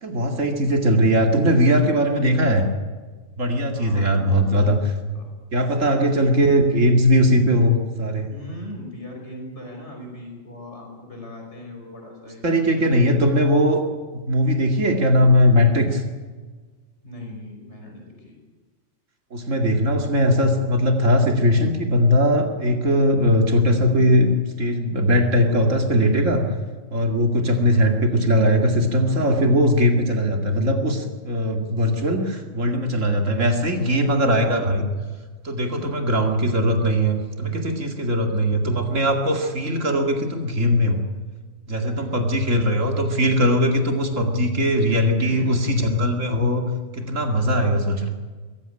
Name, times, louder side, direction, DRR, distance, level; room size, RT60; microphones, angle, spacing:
voice 1, 0.0-2.7 3.4-4.9 5.5-8.3 12.4-13.8 14.1-16.0 19.3-24.3 24.6-26.5 26.9-34.8 35.4-41.0 41.7-46.6 46.9-48.1, equal, 80° right, 3 dB, 2.7 m, -20 dB
voice 2, 3.7-4.5 5.1-5.3 5.8-5.9 8.3-12.9 17.0-18.4 33.7-34.3 37.9-38.5 41.9-42.4 45.2-45.5, left 1 dB, 65° left, 1 dB, 5.5 m, -39 dB
22.5 x 15.0 x 10.0 m, 1.4 s
omnidirectional pair, 1.3 m